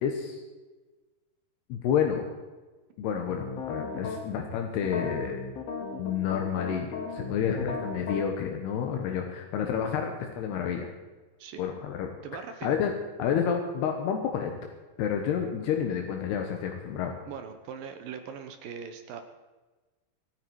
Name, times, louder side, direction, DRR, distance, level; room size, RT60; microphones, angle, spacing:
voice 1, 0.0-0.4 1.7-2.2 3.0-5.4 6.0-10.9 11.6-12.1 12.6-12.9 13.2-14.5 15.0-17.1, left 8 dB, 85° left, 3 dB, 3.4 m, -29 dB
sound 1, 3.3-4.2 4.8-8.2, left 4 dB, 50° left, 2.5 m, -35 dB
voice 2, 12.2-12.8 17.3-19.2, right 7 dB, 70° right, 7 dB, 2.6 m, -40 dB
25.5 x 9.6 x 4.8 m, 1.2 s
omnidirectional pair, 4.6 m